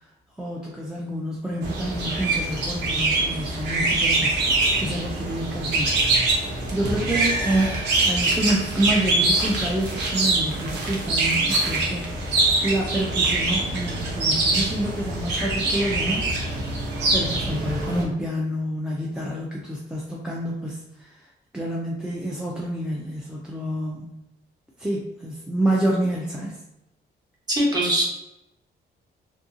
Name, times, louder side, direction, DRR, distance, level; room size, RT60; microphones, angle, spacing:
voice 1, 0.4-6.0 6.7-16.3 17.1-21.1 21.5-24.1 24.8-26.6, right 1 dB, 5° right, -4 dB, 0.3 m, -28 dB
sound 1, 1.6-18.0, right 2 dB, 80° right, 0.7 m, -24 dB
voice 2, 27.5-28.0, right 1 dB, 25° right, -4 dB, 0.8 m, -21 dB
2.7 x 2.6 x 2.5 m, 0.92 s
cardioid pair, 155°, 18 cm